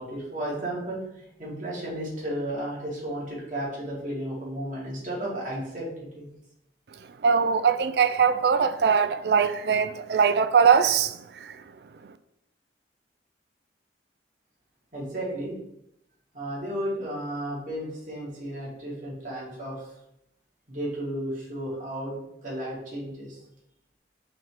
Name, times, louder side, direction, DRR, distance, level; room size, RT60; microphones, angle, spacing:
voice 1, 0.0-5.9 6.1-6.3 14.9-15.5 16.3-19.9 20.7-23.4, right 1 dB, 45° right, 2.4 m, -33 dB
voice 2, 7.2-11.5, right 6 dB, 65° right, 0.4 m, -21 dB
5.6 x 3.6 x 4.9 m
head